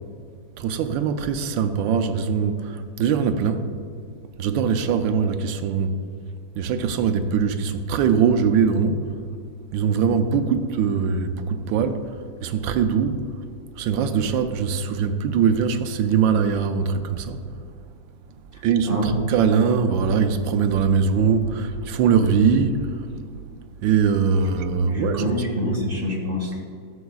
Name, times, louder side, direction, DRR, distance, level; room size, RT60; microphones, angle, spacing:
voice 1, 0.6-3.7 4.4-6.0 6.6-9.1 9.7-12.2 12.4-13.3 13.8-17.4 18.6-23.1 23.8-25.4 25.7-25.8, right 6 dB, 85° right, 8 dB, 1.3 m, -22 dB
voice 2, 24.9-26.6, equal, 35° right, -1 dB, 1.2 m, -26 dB
13.0 x 7.1 x 2.4 m, 2.3 s
omnidirectional pair, 2.0 m